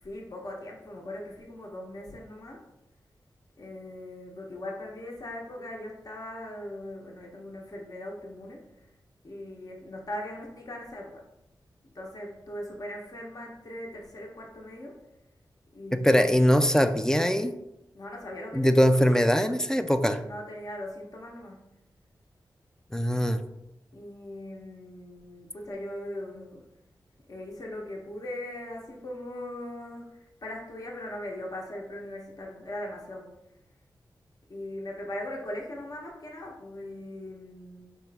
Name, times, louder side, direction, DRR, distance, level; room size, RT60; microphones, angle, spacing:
voice 1, 0.0-2.6 3.6-8.9 9.2-11.2 11.9-15.0 15.7-16.5 17.9-18.9 20.2-21.8 23.9-26.6 27.3-33.3 34.5-37.9, left 1 dB, 50° left, 0 dB, 0.8 m, -40 dB
voice 2, 15.9-17.5 18.5-20.2 22.9-23.4, equal, 5° left, 8 dB, 0.3 m, -22 dB
4.6 x 3.0 x 3.3 m, 0.88 s
cardioid pair, 65°, 8 cm